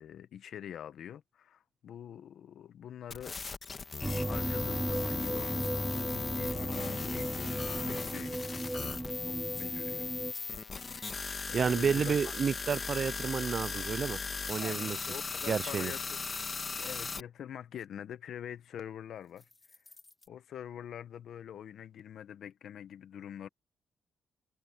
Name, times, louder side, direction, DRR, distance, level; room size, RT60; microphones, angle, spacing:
voice 1, 0.0-3.4 4.2-8.5 9.3-10.1 10.9-12.3 14.5-16.2 16.7-19.5 20.3-23.5, left 9 dB, 75° left, 1.1 m, -45 dB
sound 1, 3.1-17.2, left 4 dB, 40° left, 1.9 m, -38 dB
sound 2, 4.0-10.3, right 1 dB, 10° right, 0.9 m, -36 dB
sound 3, 4.8-5.0 5.5-6.0 6.4-6.5 7.2-7.4 7.9-8.2 8.7-9.0 9.5-9.7 10.1-10.5 10.9-11.2 11.8-12.0 12.6-12.9 13.6-13.7 14.4-14.7 15.3-15.6 16.2-16.5 19.4-20.3, left 3 dB, 25° left, 5.1 m, -50 dB
voice 2, 11.5-14.2 14.5-15.0 15.5-15.9, right 6 dB, 50° right, 0.5 m, -30 dB
cardioid pair, 85°, 0 cm